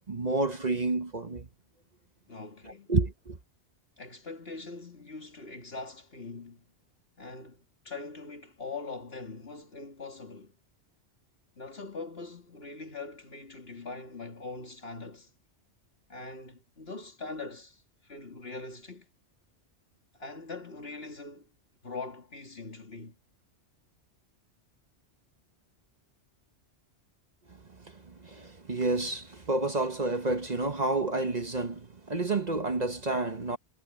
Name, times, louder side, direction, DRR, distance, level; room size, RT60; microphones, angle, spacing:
voice 1, 0.1-1.5 2.9-3.4 27.9-33.6, right 3 dB, 40° right, 1.2 m, -29 dB
voice 2, 2.3-2.9 4.0-6.6 7.2-10.5 11.6-15.3 16.1-19.1 20.1-21.5 21.8-23.2, left 3 dB, 60° left, 3.2 m, -42 dB
omnidirectional pair, 1.2 m